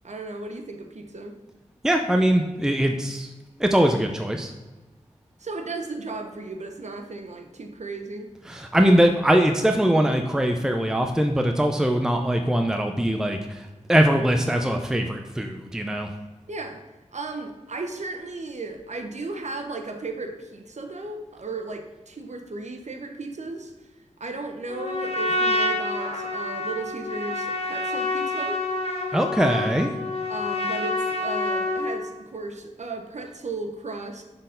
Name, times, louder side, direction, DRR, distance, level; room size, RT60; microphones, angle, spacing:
voice 1, 0.0-1.4 5.4-8.3 16.5-16.8 17.1-23.9 24.2-28.6 30.3-34.2, right 3 dB, 65° right, 5 dB, 0.8 m, -35 dB
voice 2, 1.8-3.3 3.6-4.5 8.5-16.1 29.1-29.9, right 1 dB, 5° right, 4 dB, 0.6 m, -22 dB
Trumpet, 24.7-32.0, left 2 dB, 55° left, 1.1 m, -27 dB
6.3 x 4.0 x 3.9 m, 1.2 s
cardioid pair, 45°, 13 cm